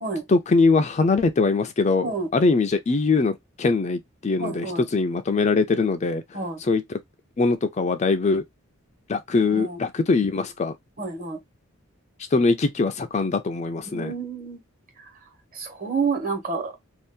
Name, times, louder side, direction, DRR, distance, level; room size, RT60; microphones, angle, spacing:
voice 1, 0.3-6.2 6.6-7.0 7.4-8.4 9.1-10.7 12.3-14.1, left 3 dB, 35° left, 0.4 m, -22 dB
voice 2, 4.4-4.8 6.3-6.6 9.5-9.8 11.0-11.4 13.9-14.6 15.5-16.7, right 4 dB, 40° right, 1.2 m, -29 dB
2.7 x 2.4 x 3.4 m
head